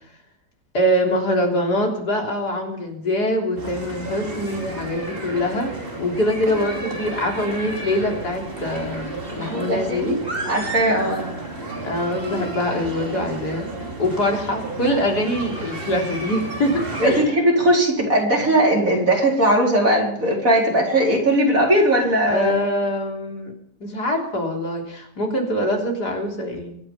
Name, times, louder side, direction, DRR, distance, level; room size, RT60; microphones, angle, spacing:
voice 1, 0.7-5.7 6.0-10.2 11.8-13.7 14.0-17.3 22.3-23.5 23.8-26.8, left 1 dB, 65° left, 0 dB, 4.1 m, -24 dB
sound 1, 3.6-17.2, right 2 dB, 30° right, 3.2 m, -32 dB
voice 2, 9.4-10.2 10.4-11.3 17.0-22.6, right 1 dB, 50° right, -2 dB, 5.1 m, -19 dB
24.0 x 9.7 x 5.5 m, 0.69 s
omnidirectional pair, 1.9 m